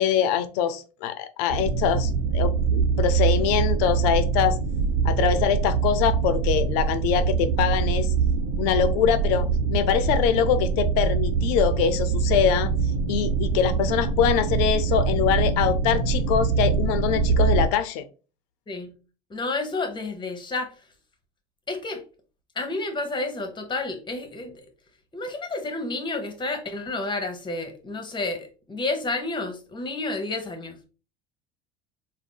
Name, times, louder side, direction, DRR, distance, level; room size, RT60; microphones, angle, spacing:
voice 1, 0.0-4.6 5.0-8.1 8.6-12.7 13.1-18.0, left 8 dB, 70° left, 0.5 m, -24 dB
sound 1, 1.5-17.7, right 5 dB, 70° right, 0.5 m, -24 dB
voice 2, 19.3-20.7 21.7-22.0 22.5-24.6 25.1-30.8, left 2 dB, 20° left, 1.0 m, -30 dB
3.6 x 2.1 x 3.9 m
hypercardioid pair, 80°, 21 cm